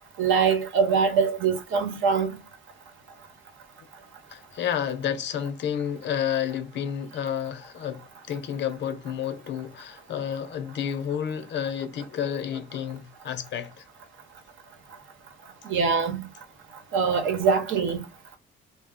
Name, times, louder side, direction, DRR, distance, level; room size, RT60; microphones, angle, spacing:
voice 1, 0.2-2.4 15.6-16.2 16.9-18.0, right 5 dB, 80° right, 0.9 m, -23 dB
voice 2, 4.3-13.8, left 9 dB, 65° left, 0.6 m, -30 dB
2.3 x 2.0 x 3.5 m
cardioid pair, 90°, 20 cm